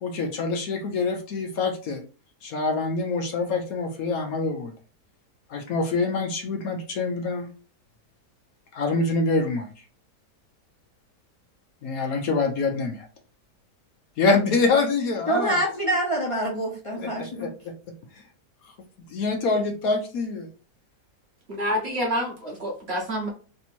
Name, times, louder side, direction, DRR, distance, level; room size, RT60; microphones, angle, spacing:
voice 1, 0.0-2.0 2.4-4.7 5.5-7.5 8.7-9.7 11.8-13.1 14.2-15.6 17.0-17.7 18.1-18.2 18.6-18.7 19.1-20.5, left 3 dB, 65° left, 4 dB, 1.0 m, -25 dB
voice 2, 15.3-17.5, right 1 dB, 25° left, -2 dB, 0.8 m, -26 dB
voice 3, 21.5-23.3, equal, 45° right, -2 dB, 1.1 m, -28 dB
3.4 x 2.8 x 4.2 m, 0.37 s
omnidirectional pair, 1.8 m